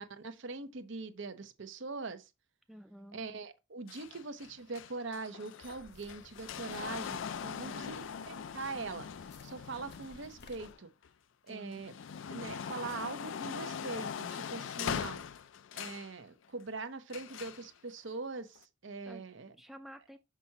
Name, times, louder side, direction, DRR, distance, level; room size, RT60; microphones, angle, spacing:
voice 1, 0.0-2.3 3.1-7.2 7.6-9.1 9.4-10.9 11.5-11.9 12.3-15.2 15.7-19.5, right 3 dB, 70° right, 0.8 m, -42 dB
voice 2, 2.7-3.2 7.4-8.1 11.5-11.8 19.1-19.2 19.5-20.2, equal, ahead, 0.4 m, -51 dB
sound 1, 3.9-11.1 11.6-16.1 17.1-17.7 18.5-18.6, left 7 dB, 75° left, 0.4 m, -41 dB
sound 2, 5.6-10.7, left 3 dB, 55° left, 0.9 m, -58 dB
6.0 x 5.7 x 2.8 m
head